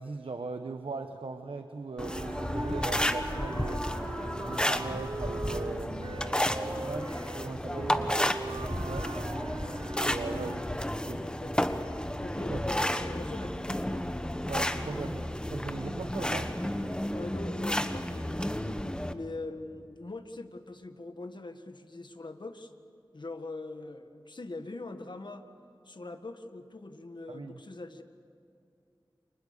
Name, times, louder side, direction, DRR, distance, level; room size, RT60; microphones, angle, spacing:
voice 1, 0.0-3.9 4.3-8.1 8.5-9.1 10.0-10.6 11.0-11.3 12.5-12.6 14.5-16.5 27.3-27.6, right 3 dB, 90° right, 7 dB, 1.0 m, -39 dB
sound 1, 1.9-10.6, right 3 dB, 65° right, 0.8 m, -41 dB
sound 2, 2.0-19.1, left 1 dB, 10° left, 1.3 m, -32 dB
voice 2, 10.2-11.8 12.2-14.1 17.1-18.8 19.1-22.7 23.1-25.5 25.8-28.0, left 2 dB, 60° left, 7 dB, 1.7 m, -42 dB
29.5 x 26.0 x 6.8 m, 2.6 s
wide cardioid pair, 55°, 9 cm